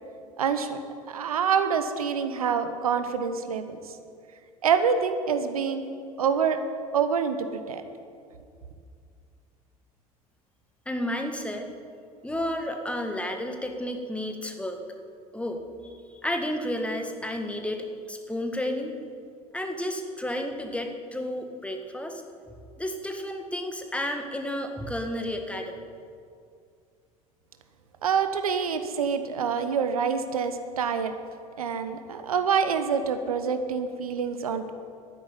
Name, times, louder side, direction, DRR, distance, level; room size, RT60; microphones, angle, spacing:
voice 1, 0.4-0.8 1.1-3.9 4.6-5.8 6.2-6.6 6.9-7.8 28.0-31.1 31.6-34.7, right 6 dB, 75° right, 9 dB, 0.9 m, -26 dB
voice 2, 10.9-11.7 12.2-14.8 15.3-15.6 16.2-18.9 19.5-22.2 22.8-25.9, left 1 dB, 5° left, 4 dB, 1.8 m, -31 dB
12.0 x 10.5 x 8.8 m, 2.3 s
figure-of-eight pair, 65°, 19 cm